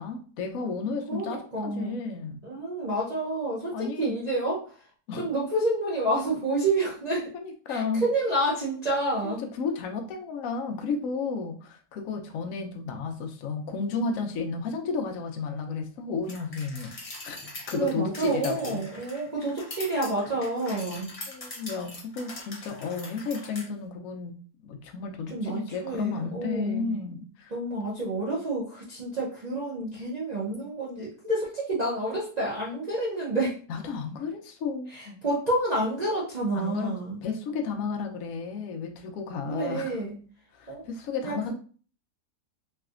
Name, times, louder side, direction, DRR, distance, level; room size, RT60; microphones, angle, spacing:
voice 1, 0.0-2.4 3.7-4.1 5.1-5.3 7.3-8.0 9.6-16.9 17.2-17.4 17.7-18.8 21.3-24.4 24.6-27.5 33.7-35.2 36.5-40.0 40.5-41.5, left 5 dB, 65° left, 3 dB, 0.9 m, -32 dB
voice 2, 1.1-2.0 2.4-4.7 5.2-7.3 7.7-9.4 17.7-21.1 25.3-27.0 27.5-33.6 34.9-37.2 39.5-40.2 40.7-40.8 41.2-41.5, right 2 dB, 40° right, -6 dB, 0.6 m, -29 dB
sound 1, 16.3-23.7, left 2 dB, 50° left, 0.4 m, -42 dB
3.2 x 2.8 x 2.4 m, 0.40 s
omnidirectional pair, 1.7 m